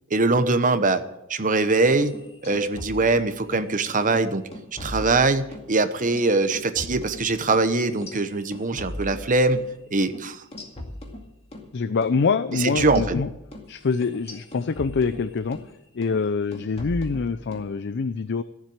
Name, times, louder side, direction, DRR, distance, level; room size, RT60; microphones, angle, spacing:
voice 1, 0.1-1.0 1.3-2.2 2.4-4.4 4.8-9.6 9.9-10.4 12.6-13.2, right 3 dB, 40° right, 10 dB, 1.0 m, -22 dB
sound 1, 1.9-3.7 4.0-4.2 4.5-5.7 6.0-9.7 10.0-10.2 10.5-11.7 12.0-12.2 12.5-15.7 16.0-16.3 16.5-17.7, left 1 dB, 30° left, 2.2 m, -38 dB
voice 2, 11.7-13.3 13.7-18.4, left 4 dB, 55° left, 13 dB, 0.5 m, -25 dB
15.0 x 7.4 x 8.8 m, 0.89 s
head